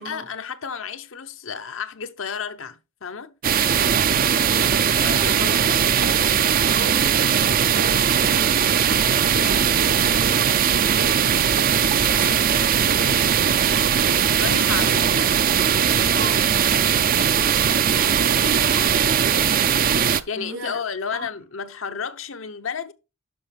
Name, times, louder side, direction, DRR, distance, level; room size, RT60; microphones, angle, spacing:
voice 1, 0.0-3.3 5.0-6.2 14.4-15.1 16.7-16.8 19.6-19.9 20.3-22.9, left 6 dB, 75° left, 0.8 m, -32 dB
sound 1, 3.4-20.2, right 8 dB, 45° right, 0.5 m, -19 dB
voice 2, 4.0-4.4 6.7-15.0 15.5-16.5 17.6-20.0 20.3-20.8 21.1-21.3, right 2 dB, 80° right, 3.8 m, -36 dB
11.5 x 5.3 x 3.4 m
head